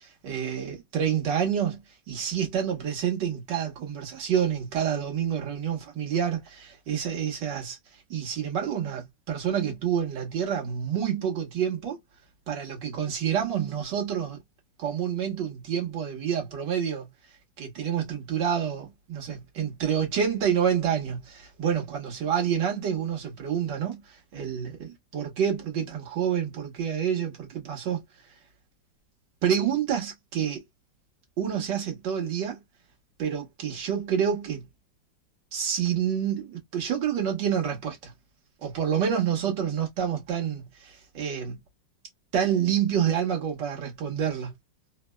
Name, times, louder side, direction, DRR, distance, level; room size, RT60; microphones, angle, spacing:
voice 1, 0.0-1.8 2.1-7.8 8.1-12.0 12.5-14.4 14.8-17.1 17.6-28.0 29.4-30.6 31.4-32.6 33.2-34.7 35.5-38.1 38.6-41.6 42.3-44.5, right 8 dB, 70° right, 1.8 m, -28 dB
4.0 x 2.0 x 2.2 m
omnidirectional pair, 2.0 m